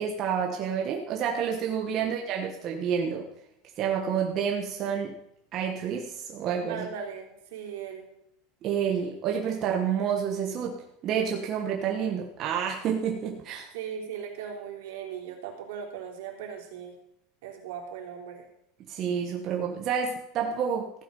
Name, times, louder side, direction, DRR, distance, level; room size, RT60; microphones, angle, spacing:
voice 1, 0.0-3.3 3.8-5.1 5.5-6.9 8.6-13.7 18.9-20.9, right 7 dB, 30° right, 0 dB, 1.3 m, -29 dB
voice 2, 1.9-2.4 6.7-8.1 13.7-17.0 17.4-18.4, right 7 dB, 75° right, 0 dB, 3.5 m, -38 dB
15.0 x 8.7 x 5.4 m, 0.79 s
supercardioid pair, 175°, 0 cm